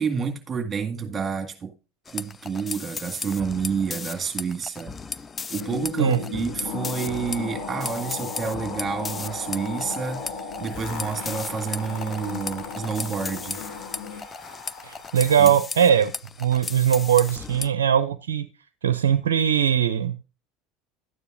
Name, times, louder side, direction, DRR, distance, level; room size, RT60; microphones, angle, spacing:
voice 1, 0.0-1.7 2.1-4.9 5.5-13.6 15.4-15.5, right 6 dB, 25° right, 2.0 m, -29 dB
sound 1, 2.0-17.7, left 4 dB, 25° left, 0.4 m, -36 dB
sound 2, 5.5-14.2, left 7 dB, 75° left, 2.1 m, -38 dB
sound 3, 6.6-15.4, left 4 dB, 40° left, 2.7 m, -38 dB
voice 2, 14.8-16.1 16.4-18.5 18.8-20.2, right 9 dB, 80° right, 0.5 m, -20 dB
12.0 x 9.5 x 2.5 m
hypercardioid pair, 75°, 0 cm